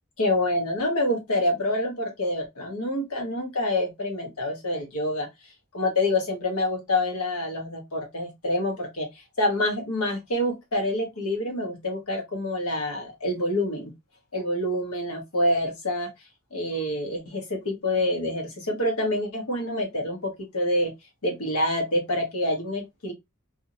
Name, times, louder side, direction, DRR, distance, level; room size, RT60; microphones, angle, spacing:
voice 1, 0.2-5.3 5.7-9.1 9.4-13.9 14.3-16.1 16.5-20.9 21.2-23.1, left 1 dB, 90° left, 1.3 m, -27 dB
2.7 x 2.6 x 2.7 m
head